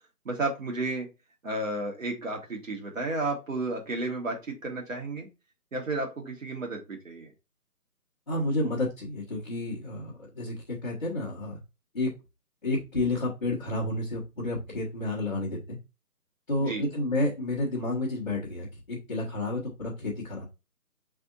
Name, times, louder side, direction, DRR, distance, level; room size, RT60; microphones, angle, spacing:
voice 1, 0.2-1.1 1.4-5.3 5.7-7.3 16.6-16.8, right 2 dB, 55° right, 1 dB, 1.5 m, -32 dB
voice 2, 8.3-11.6 11.9-12.1 12.6-15.8 16.5-20.4, left 1 dB, 30° left, -10 dB, 1.3 m, -30 dB
5.9 x 3.5 x 2.5 m, 0.26 s
figure-of-eight pair, 165°, 47 cm